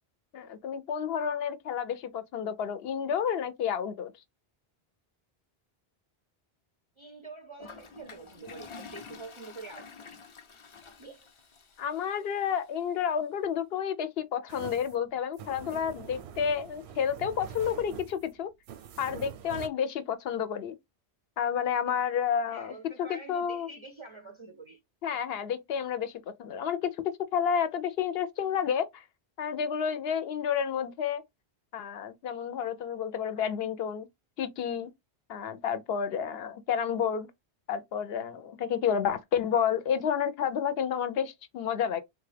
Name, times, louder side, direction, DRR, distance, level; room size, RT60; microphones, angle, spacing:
voice 1, 0.3-4.1 11.8-18.5 19.0-20.8 21.4-23.7 25.0-26.9 27.3-29.0 29.4-31.2 31.7-34.1 34.4-34.9 35.3-37.3 37.7-42.0, left 8 dB, 75° left, 0.8 m, -30 dB
voice 2, 7.0-9.9 10.8-11.3 22.5-24.8, right 3 dB, 40° right, 0.4 m, -46 dB
Toilet flush, 7.6-12.6, left 5 dB, 40° left, 0.5 m, -49 dB
sound 1, 14.5-19.7, right 8 dB, 90° right, 0.8 m, -45 dB
3.7 x 2.2 x 3.2 m
omnidirectional pair, 1.1 m